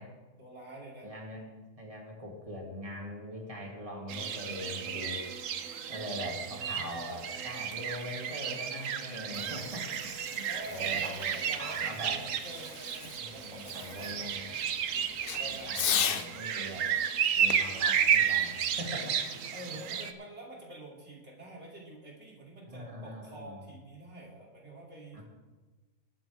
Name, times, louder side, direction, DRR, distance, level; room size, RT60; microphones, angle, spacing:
voice 1, 0.0-1.4 5.9-6.9 10.5-14.6 14.9-16.4 19.5-25.2, right 1 dB, 55° right, -3 dB, 3.2 m, -47 dB
voice 2, 1.0-5.3 5.9-11.1 11.6-12.2 13.2-14.5 15.4-16.9 17.4-19.4 19.9-20.0 22.7-23.6 25.1-25.2, equal, 25° right, -1 dB, 2.5 m, -42 dB
sound 1, 4.1-20.1, right 8 dB, 70° right, 1.1 m, -32 dB
Fireworks, 9.1-16.3 17.5-19.1, left 8 dB, 55° left, 0.7 m, -38 dB
21.5 x 9.2 x 3.5 m, 1.3 s
omnidirectional pair, 1.4 m